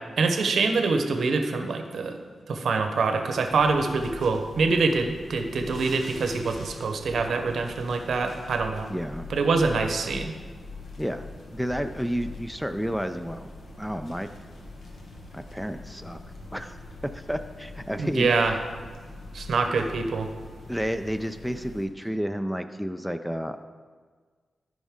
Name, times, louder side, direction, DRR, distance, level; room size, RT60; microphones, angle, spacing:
voice 1, 0.2-2.2 2.5-8.9 9.3-10.3 18.0-18.5 19.3-20.3, right 4 dB, 80° right, 6 dB, 0.8 m, -25 dB
sound 1, 3.4-21.9, left 2 dB, 65° left, 1.4 m, -43 dB
voice 2, 8.9-9.3 11.0-13.5 13.8-14.3 15.3-16.2 16.5-16.8 17.0-18.3 20.7-23.6, equal, 5° left, 8 dB, 0.4 m, -31 dB
13.5 x 5.3 x 3.6 m, 1.5 s
cardioid pair, 85°, 0 cm